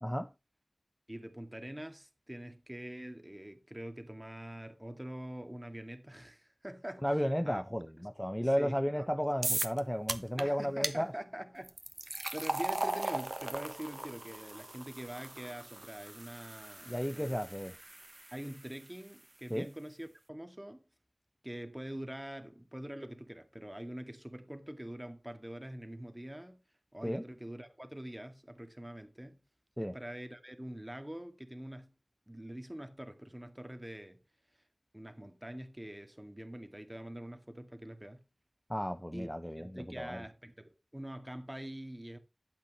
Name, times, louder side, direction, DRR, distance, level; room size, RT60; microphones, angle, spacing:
voice 1, 0.0-0.3 7.0-11.1 16.9-17.7 19.5-19.7 27.0-27.2 29.8-29.9 38.7-40.2, equal, 10° left, 0.7 m, -33 dB
voice 2, 1.1-7.6 8.0-8.1 8.6-9.1 10.4-11.8 12.0-17.4 18.3-20.8 21.4-26.6 26.9-29.4 29.8-31.9 32.3-34.2 34.9-38.2 39.1-39.3 39.6-42.2, right 1 dB, 15° right, 2.0 m, -44 dB
sound 1, 9.4-9.8 10.1-10.4 10.8-11.0 11.6-18.8, right 1 dB, 45° right, 1.1 m, -38 dB
12.0 x 8.8 x 3.1 m
wide cardioid pair, 40°, 0 cm